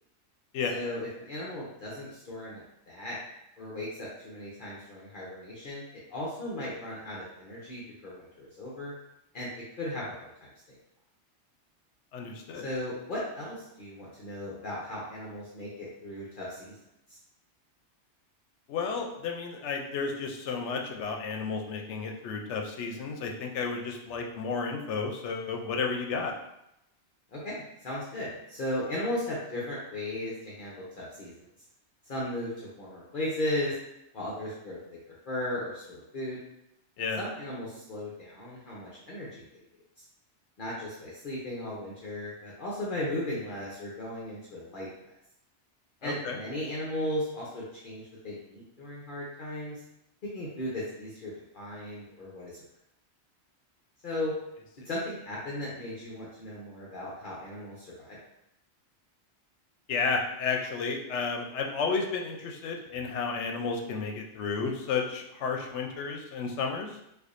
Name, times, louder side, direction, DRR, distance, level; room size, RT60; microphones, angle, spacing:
voice 1, 0.7-3.2 3.6-5.8 6.1-8.9 9.3-9.5 9.8-10.5 12.6-16.7 17.1-17.2 27.3-31.3 32.1-33.8 34.1-34.8 35.3-36.4 37.2-39.4 40.6-45.1 46.0-49.8 50.3-52.6 54.0-54.3 54.9-58.2, left 1 dB, 50° left, -6 dB, 0.8 m, -36 dB
voice 2, 12.1-12.7 18.7-26.3 37.0-37.2 46.0-46.4 59.9-67.0, left 5 dB, 80° left, 2 dB, 0.9 m, -32 dB
4.3 x 2.5 x 2.5 m, 0.83 s
omnidirectional pair, 1.2 m